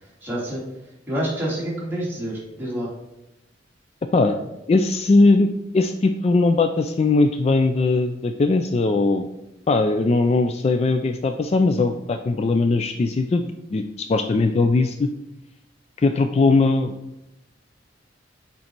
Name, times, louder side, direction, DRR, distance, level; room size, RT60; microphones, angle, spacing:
voice 1, 0.2-0.6 1.1-2.9, right 1 dB, 10° right, -6 dB, 2.1 m, -27 dB
voice 2, 4.7-5.5 5.7-9.3 9.7-13.4 13.7-15.1 16.0-16.9, left 3 dB, 35° left, 7 dB, 0.3 m, -19 dB
6.4 x 4.1 x 4.5 m, 0.92 s
head